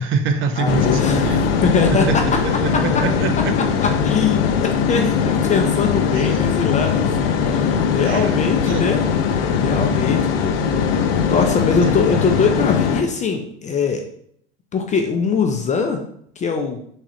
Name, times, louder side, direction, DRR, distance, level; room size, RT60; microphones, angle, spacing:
voice 1, 0.0-1.5 2.1-2.2 2.4-3.5 6.1-6.4 8.0-8.4 8.7-8.8 11.8-12.0, right 5 dB, 40° right, 8 dB, 0.6 m, -25 dB
voice 2, 0.6-1.3 1.6-2.2 3.8-9.0 9.3-10.6 11.2-14.0 14.7-16.0 16.4-16.8, left 5 dB, 25° left, 4 dB, 0.5 m, -22 dB
sound 1, 0.7-13.0, left 6 dB, 75° left, 0.6 m, -20 dB
3.5 x 3.2 x 2.9 m, 0.67 s
hypercardioid pair, 90°, 30 cm